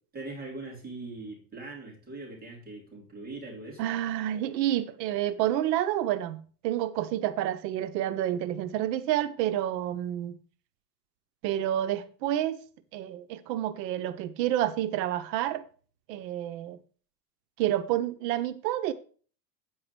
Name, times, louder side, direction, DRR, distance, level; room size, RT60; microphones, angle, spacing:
voice 1, 0.0-3.9, right 2 dB, 20° right, 3.4 m, -41 dB
voice 2, 3.8-10.4 11.4-12.6 12.9-15.6 16.1-16.8 17.6-18.9, right 12 dB, 80° right, 0.9 m, -29 dB
8.9 x 4.8 x 5.9 m
supercardioid pair, 140°, 48 cm